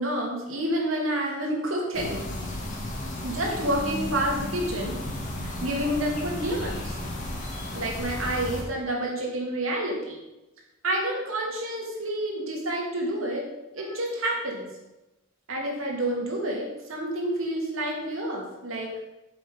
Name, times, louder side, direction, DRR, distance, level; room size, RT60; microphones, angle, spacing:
voice 1, 0.0-2.4 3.2-5.0 5.4-7.0 7.7-10.2 10.8-13.5 13.7-14.7 15.5-18.9, right 1 dB, 80° right, -1 dB, 2.6 m, -29 dB
sound 1, 1.9-8.6, left 1 dB, 40° left, 2.0 m, -34 dB
8.2 x 7.7 x 5.2 m, 0.97 s
head